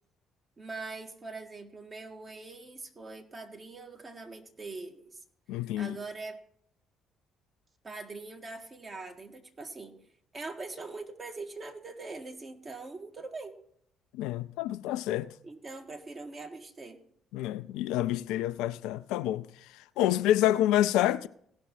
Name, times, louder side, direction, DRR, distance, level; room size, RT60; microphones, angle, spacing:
voice 1, 0.6-5.2 5.8-6.4 7.8-10.0 10.3-13.6 15.4-17.0, right 3 dB, 35° right, 1.8 m, -42 dB
voice 2, 5.5-6.0 14.1-15.3 17.3-19.4 20.0-21.3, left 13 dB, 65° left, 0.3 m, -27 dB
17.0 x 6.1 x 4.4 m
figure-of-eight pair, 45°, 0 cm